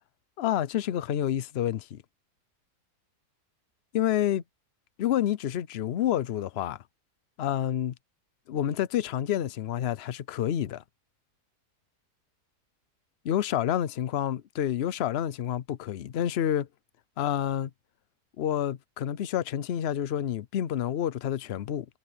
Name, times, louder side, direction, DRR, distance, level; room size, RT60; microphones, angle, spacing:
voice 1, 0.4-2.0 3.9-4.4 5.0-6.8 7.4-7.9 8.5-10.8 13.2-16.7 17.2-17.7 18.4-21.9, left 11 dB, 55° left, 0.7 m, -28 dB
omnidirectional pair, 1.7 m